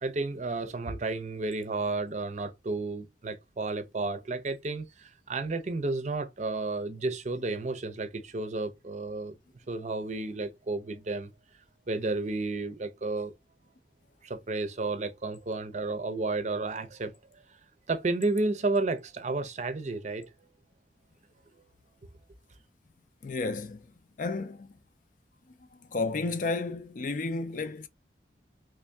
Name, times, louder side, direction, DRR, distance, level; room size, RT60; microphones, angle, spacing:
voice 1, 0.0-9.3 9.7-11.3 11.9-13.3 14.2-17.4 17.9-20.3, right 3 dB, 40° right, 0.6 m, -32 dB
voice 2, 23.2-23.9 24.2-24.7 25.9-27.9, left 3 dB, 45° left, 0.4 m, -32 dB
3.4 x 2.6 x 3.4 m
head